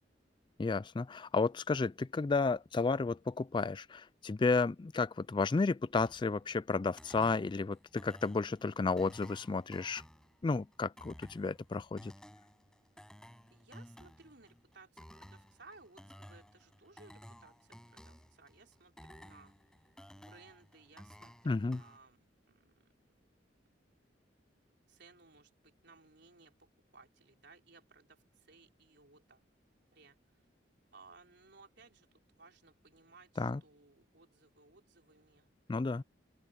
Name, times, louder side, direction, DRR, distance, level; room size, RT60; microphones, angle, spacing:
voice 1, 0.6-10.0 10.4-12.1 21.5-21.8 33.4-33.6 35.7-36.0, left 4 dB, 25° left, 0.3 m, -32 dB
sound 1, 6.0-22.0, equal, 5° left, 7.8 m, -56 dB
voice 2, 13.5-19.5 20.2-22.9 24.9-29.4 29.9-30.5 30.9-35.5, right 3 dB, 65° right, 4.1 m, -61 dB
open air
head